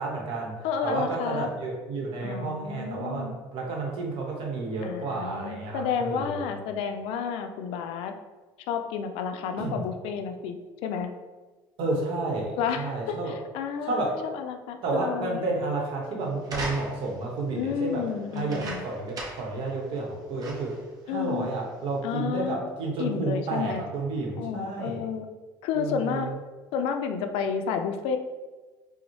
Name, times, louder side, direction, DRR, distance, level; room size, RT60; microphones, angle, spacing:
voice 1, 0.0-0.6 0.8-6.5 9.6-9.9 11.8-13.3 13.8-14.2 14.8-20.8 21.1-25.0 25.7-26.3, right 3 dB, 70° right, 0 dB, 0.9 m, -31 dB
voice 2, 0.6-1.5 2.2-3.3 4.8-8.1 8.7-10.6 10.8-11.1 12.6-15.4 17.6-18.8 21.1-21.5 22.0-22.6 23.0-23.8 24.4-25.3 25.6-26.3 26.7-28.2, left 7 dB, 80° left, 6 dB, 0.4 m, -31 dB
sound 1, 16.4-17.2 18.3-19.6 19.9-20.0 20.4-20.9 21.6-21.7, right 1 dB, 40° right, 0.7 m, -37 dB
3.9 x 2.0 x 3.0 m, 1.3 s
supercardioid pair, 100°, 9 cm